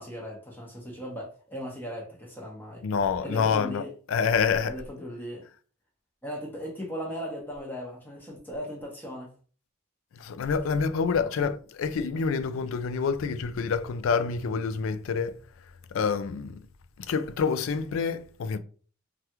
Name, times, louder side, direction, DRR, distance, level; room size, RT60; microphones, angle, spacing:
voice 1, 0.0-2.8 3.2-3.9 4.7-5.5 6.2-9.3 11.2-11.3, equal, 10° left, 0.8 m, -38 dB
voice 2, 2.8-3.8 4.1-4.8 10.2-15.4 15.9-16.6 17.1-18.6, left 5 dB, 70° left, 0.3 m, -27 dB
3.3 x 2.3 x 2.9 m
head